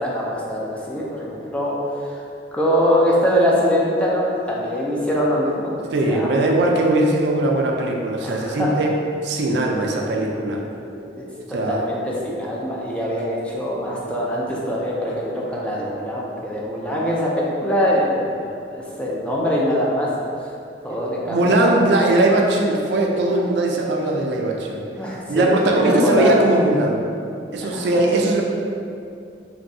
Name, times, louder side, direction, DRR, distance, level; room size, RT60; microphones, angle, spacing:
voice 1, 0.0-1.7 2.0-2.2 2.5-6.3 8.2-8.7 9.9-10.3 10.8-20.1 20.8-21.9 25.0-25.5 25.8-26.3 27.5-27.9, equal, 5° left, -5 dB, 0.3 m, -23 dB
voice 2, 5.9-9.0 9.2-10.6 11.5-11.8 21.3-24.9 25.3-27.0 27.5-28.4, right 2 dB, 75° right, 0 dB, 0.4 m, -20 dB
3.1 x 2.6 x 2.6 m, 2.5 s
head